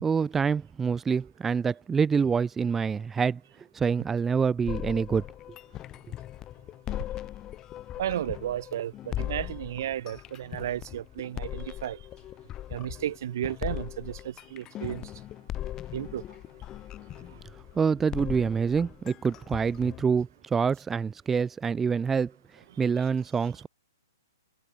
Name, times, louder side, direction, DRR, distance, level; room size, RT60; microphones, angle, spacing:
voice 1, 0.0-5.2 17.8-23.7, right 6 dB, 10° right, 1.9 m, -26 dB
sound 1, 4.7-20.0, left 13 dB, 25° left, 2.6 m, -39 dB
voice 2, 8.0-12.0 12.7-15.1 15.9-16.2, right 11 dB, 55° right, 1.3 m, -33 dB
hypercardioid pair, 135°, 2 cm